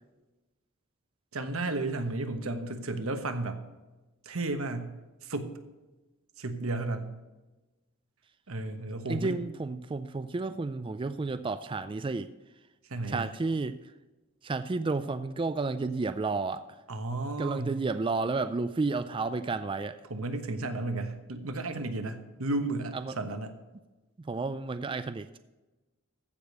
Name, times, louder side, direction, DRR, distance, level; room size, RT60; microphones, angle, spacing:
voice 1, 1.3-3.6 4.2-4.9 5.2-5.5 6.4-7.1 8.5-9.4 12.9-13.3 16.9-17.8 20.1-23.6, right 2 dB, 85° right, 7 dB, 1.3 m, -33 dB
voice 2, 9.1-12.3 13.1-13.8 14.4-16.7 17.4-20.0 22.9-23.2 24.2-25.4, right 3 dB, 25° right, 12 dB, 0.3 m, -31 dB
15.0 x 5.1 x 6.7 m, 1.1 s
head